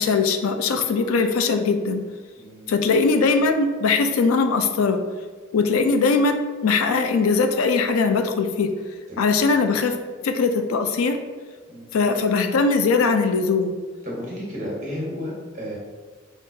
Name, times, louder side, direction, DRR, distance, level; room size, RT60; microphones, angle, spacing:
voice 1, 0.0-2.0 2.7-5.0 5.5-8.7 9.2-9.9 10.2-11.2 11.9-13.7, left 4 dB, 85° left, 7 dB, 0.4 m, -20 dB
voice 2, 2.3-2.7 9.1-9.4 11.7-11.9 14.0-15.8, equal, 35° right, -5 dB, 1.2 m, -33 dB
5.2 x 2.4 x 2.7 m, 1.4 s
head